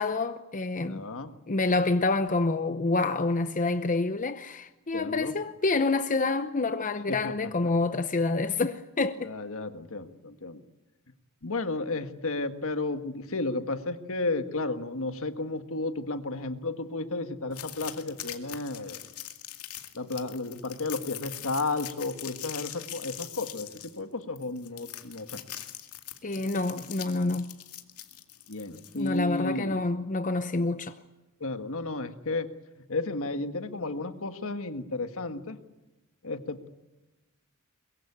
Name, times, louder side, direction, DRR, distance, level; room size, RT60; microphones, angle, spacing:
voice 1, 0.0-1.0 1.5-9.3 26.2-27.5 28.9-31.0, left 3 dB, 35° left, 0.8 m, -27 dB
voice 2, 0.8-1.4 4.9-5.4 7.1-7.3 7.6-7.7 9.2-10.6 11.4-19.0 19.9-25.4 26.4-26.5 28.5-29.8 31.4-32.5 32.9-35.6 36.2-36.7, left 2 dB, 65° left, 1.6 m, -33 dB
sound 1, 17.5-29.2, left 12 dB, 85° left, 2.2 m, -42 dB
22.5 x 22.5 x 8.6 m
head